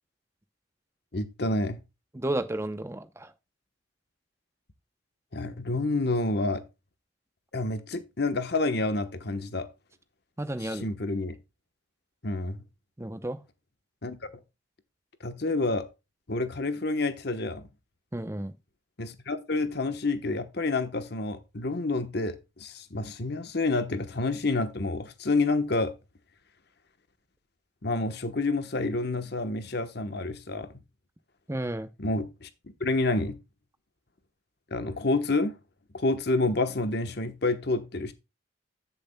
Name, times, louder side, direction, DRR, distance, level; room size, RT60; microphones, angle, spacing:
voice 1, 1.1-1.8 5.3-6.6 7.5-9.7 10.6-11.4 12.2-12.6 14.0-14.2 15.2-15.8 16.3-17.6 19.0-25.9 27.8-30.7 32.0-32.5 32.8-33.4 34.7-35.5 35.9-38.1, left 2 dB, 50° left, 1.1 m, -28 dB
voice 2, 2.1-3.3 10.4-10.9 13.0-13.4 18.1-18.5 31.5-31.9, right 1 dB, 15° right, 0.7 m, -32 dB
13.5 x 6.9 x 2.2 m
head